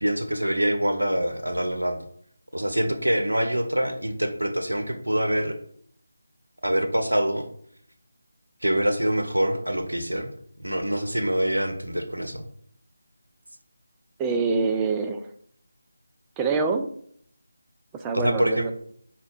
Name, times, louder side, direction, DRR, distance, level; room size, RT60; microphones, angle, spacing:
voice 1, 0.0-2.0 2.5-5.6 6.6-7.5 8.6-10.3 10.6-12.4 18.1-18.7, right 1 dB, 85° right, 6 dB, 0.6 m, -25 dB
voice 2, 14.2-15.3 16.4-16.9 18.0-18.7, right 4 dB, 10° right, 5 dB, 0.3 m, -25 dB
5.2 x 2.2 x 3.8 m, 0.64 s
figure-of-eight pair, 160°, 0 cm